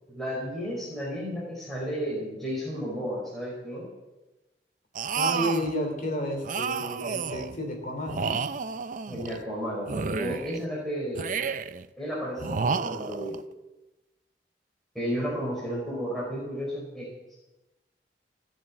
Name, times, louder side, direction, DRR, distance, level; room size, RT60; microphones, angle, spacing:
voice 1, 0.1-3.9 9.1-11.4 12.0-13.4 14.9-17.1, equal, ahead, -5 dB, 4.5 m, -33 dB
sound 1, 4.9-5.7 6.4-7.6 8.1-9.4 9.9-10.6 11.1-11.8 12.4-13.4, right 5 dB, 45° right, 0.5 m, -31 dB
voice 2, 5.2-8.4 15.5-15.7, equal, 50° left, 3 dB, 3.1 m, -31 dB
16.5 x 7.4 x 8.6 m, 1.0 s
head